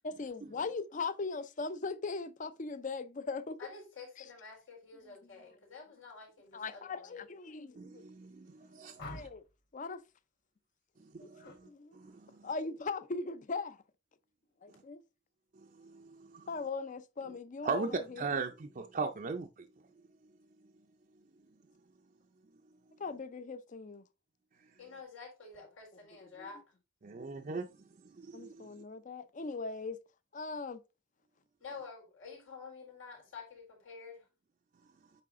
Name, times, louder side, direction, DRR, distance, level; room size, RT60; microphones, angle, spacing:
voice 1, 0.0-3.6 4.2-4.3 6.5-8.0 9.0-9.4 9.7-10.0 11.2-12.0 12.4-13.8 14.6-15.0 16.5-18.3 23.0-24.1 26.2-26.5 28.3-30.0 30.3-30.8, left 4 dB, 40° left, 0.5 m, -39 dB
voice 2, 3.6-7.2 24.8-26.6 31.6-34.2, left 5 dB, 90° left, 4.0 m, -49 dB
voice 3, 7.8-9.3 11.1-12.5 15.8-16.5 17.6-17.9 18.2-19.7 27.0-27.7 28.2-28.7, right 4 dB, 45° right, 0.5 m, -39 dB
sound 1, 9.0-9.6 11.3-11.6 12.0-12.4, left 1 dB, 55° left, 2.7 m, -48 dB
8.6 x 3.3 x 3.6 m
head